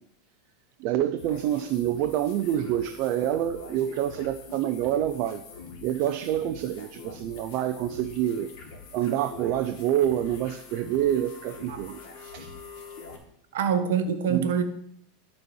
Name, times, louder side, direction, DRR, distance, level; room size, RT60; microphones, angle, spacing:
voice 1, 0.8-5.4 5.8-8.5 8.9-12.5 14.3-14.5, right 11 dB, 50° right, 7 dB, 0.6 m, -27 dB
sound 1, 1.2-13.2, left 4 dB, 60° left, 2.3 m, -44 dB
voice 2, 13.5-14.6, right 7 dB, 85° right, 9 dB, 1.4 m, -25 dB
12.0 x 4.3 x 6.2 m, 0.72 s
supercardioid pair, 145°, 0 cm